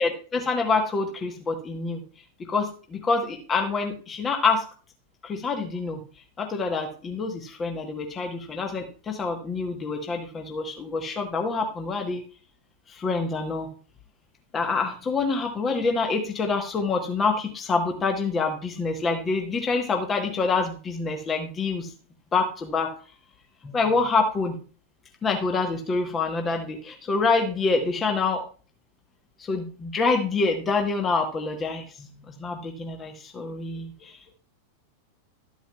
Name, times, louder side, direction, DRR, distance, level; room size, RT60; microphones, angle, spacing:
voice 1, 0.0-2.0 2.4-4.6 5.2-6.0 6.4-12.2 12.9-13.7 14.5-21.9 22.3-22.9 23.6-24.6 25.2-28.4 29.4-34.2, left 4 dB, 20° left, 4 dB, 1.2 m, -26 dB
12.5 x 8.6 x 2.4 m, 0.38 s
figure-of-eight pair, 90°, 0 cm